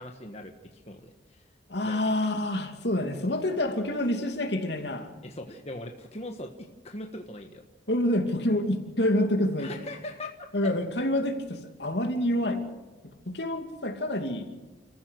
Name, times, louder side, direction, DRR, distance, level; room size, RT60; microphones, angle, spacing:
voice 1, 0.0-1.4 1.8-2.1 5.2-6.5 6.8-7.6 9.6-10.7, left 1 dB, 35° left, 3 dB, 1.4 m, -40 dB
voice 2, 1.7-5.1 7.9-9.8 10.5-12.6 13.3-14.5, left 1 dB, 70° left, 5 dB, 2.7 m, -27 dB
29.0 x 15.0 x 6.6 m, 1.2 s
head